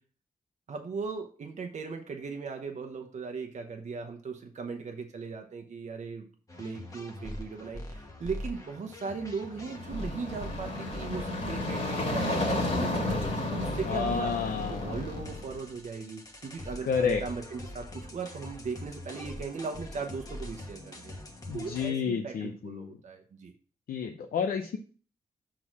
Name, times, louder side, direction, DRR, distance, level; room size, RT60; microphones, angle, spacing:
voice 1, 0.7-6.3 6.6-14.4 14.7-21.1 21.5-23.5, right 5 dB, 50° right, 3 dB, 0.9 m, -38 dB
sound 1, 6.5-21.9, left 1 dB, 25° left, 1.1 m, -43 dB
sound 2, 9.6-15.6, left 2 dB, 45° left, 2.1 m, -32 dB
voice 2, 13.9-14.9 16.9-17.2 21.5-23.0 23.9-24.8, left 6 dB, 85° left, 4 dB, 0.6 m, -30 dB
6.3 x 3.8 x 6.0 m, 0.41 s
wide cardioid pair, 135°, 15 cm